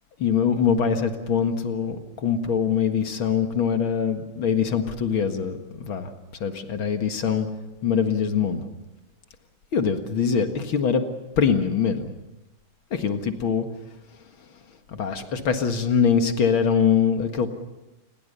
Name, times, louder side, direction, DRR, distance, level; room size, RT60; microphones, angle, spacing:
voice 1, 0.2-6.1 6.4-7.5 7.8-8.6 9.7-11.0 11.4-12.1 12.9-13.7 14.9-17.5, left 6 dB, 45° left, 6 dB, 2.1 m, -23 dB
29.0 x 21.5 x 6.9 m, 1.0 s
omnidirectional pair, 3.7 m